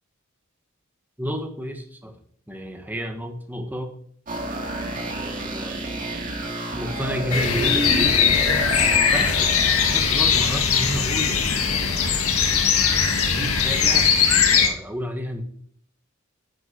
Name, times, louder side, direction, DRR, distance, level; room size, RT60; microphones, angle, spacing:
voice 1, 1.2-2.1 2.5-3.9 5.0-5.8 6.7-8.2 9.1-12.2 13.3-14.1 14.5-15.4, equal, 10° right, 4 dB, 1.6 m, -31 dB
sound 1, 4.3-10.9, right 1 dB, 40° right, 2.4 m, -30 dB
sound 2, 7.3-14.7, left 6 dB, 90° left, 1.8 m, -20 dB
11.0 x 7.7 x 4.6 m, 0.62 s
head